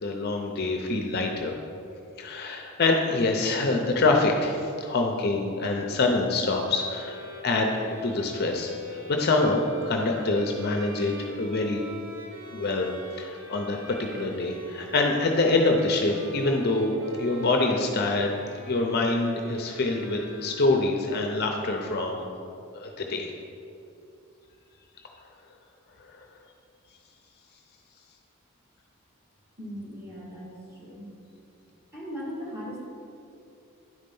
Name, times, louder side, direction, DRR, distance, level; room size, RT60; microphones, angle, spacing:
voice 1, 0.0-1.5 2.2-7.1 7.4-11.8 12.5-12.9 13.2-18.3 18.7-22.3 22.7-23.3, left 2 dB, 45° left, 2 dB, 0.6 m, -25 dB
Bowed string instrument, 6.5-21.1, right 1 dB, 60° right, 1.0 m, -43 dB
voice 2, 29.6-31.1 31.9-32.8, equal, 10° right, -6 dB, 1.9 m, -38 dB
9.6 x 4.3 x 5.4 m, 2.6 s
head